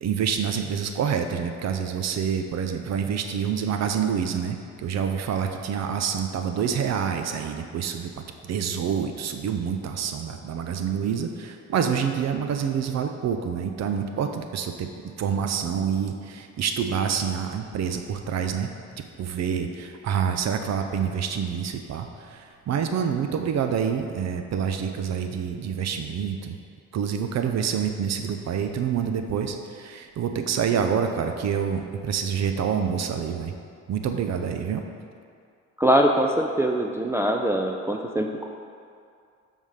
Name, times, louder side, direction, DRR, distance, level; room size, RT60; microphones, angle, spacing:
voice 1, 0.0-14.9 15.2-18.7 19.2-26.6 26.9-33.5 33.9-34.8, right 7 dB, 60° right, 6 dB, 0.6 m, -27 dB
voice 2, 35.8-38.5, right 1 dB, 10° right, 2 dB, 0.4 m, -23 dB
7.2 x 3.6 x 6.3 m, 2.3 s
cardioid pair, 90°, 30 cm